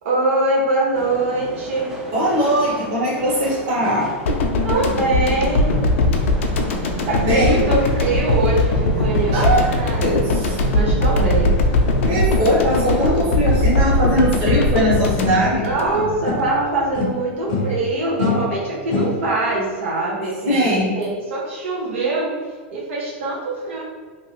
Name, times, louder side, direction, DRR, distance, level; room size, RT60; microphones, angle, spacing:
voice 1, 0.0-2.0 4.6-5.7 7.1-10.0 10.4-11.6 15.5-22.4 22.7-23.8, right 2 dB, 75° right, -4 dB, 0.8 m, -23 dB
sound 1, 0.9-14.5, equal, 5° right, 0.4 m, -37 dB
voice 2, 2.1-4.1 7.1-7.6 9.3-9.6 10.0-10.6 12.1-15.6 20.5-20.9, equal, 35° right, -6 dB, 1.2 m, -20 dB
sound 2, 4.3-16.4 16.7-16.9, left 2 dB, 85° left, 0.5 m, -20 dB
sound 3, 14.8-16.6 16.9-19.5, left 4 dB, 45° left, 0.6 m, -26 dB
2.9 x 2.7 x 3.0 m, 1.5 s
supercardioid pair, 175°, 7 cm